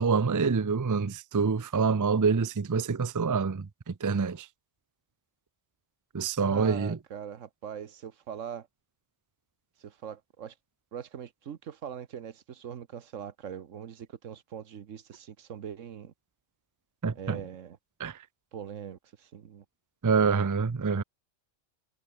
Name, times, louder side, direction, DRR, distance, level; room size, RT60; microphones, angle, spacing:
voice 1, 0.0-4.5 6.1-7.0 17.0-17.4 18.0-18.2 20.0-21.0, right 5 dB, 30° right, 0.3 m, -26 dB
voice 2, 6.4-8.7 9.8-10.5 10.9-16.1 17.2-17.8 18.5-19.6 20.9-21.0, right 8 dB, 80° right, 1.4 m, -41 dB
omnidirectional pair, 1.3 m